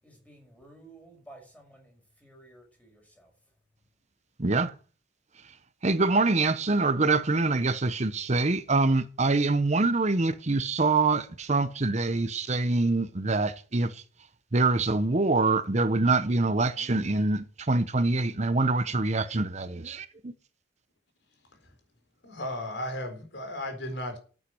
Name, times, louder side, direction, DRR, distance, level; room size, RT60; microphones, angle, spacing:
voice 1, 0.0-3.3, right 2 dB, 5° left, 5.5 m, -53 dB
voice 2, 4.4-4.7 5.8-14.0 14.5-20.3, right 3 dB, 35° right, 0.9 m, -25 dB
voice 3, 22.2-24.2, left 1 dB, 65° left, 4.2 m, -35 dB
11.5 x 9.1 x 7.7 m
head